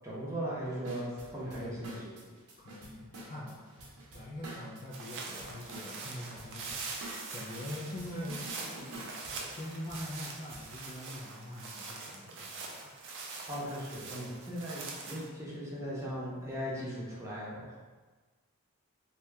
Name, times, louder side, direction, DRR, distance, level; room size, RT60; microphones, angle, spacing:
voice 1, 0.0-2.3 13.5-17.8, equal, 15° right, -7 dB, 0.7 m, -38 dB
sound 1, 0.8-11.0, right 1 dB, 80° right, 0.7 m, -48 dB
voice 2, 1.5-2.0 2.6-3.7 4.1-7.1 7.3-8.5 9.5-12.8, left 1 dB, 35° left, -4 dB, 0.4 m, -43 dB
sound 2, 4.9-15.3, right 4 dB, 55° right, 0.4 m, -43 dB
2.7 x 2.3 x 3.2 m, 1.3 s
head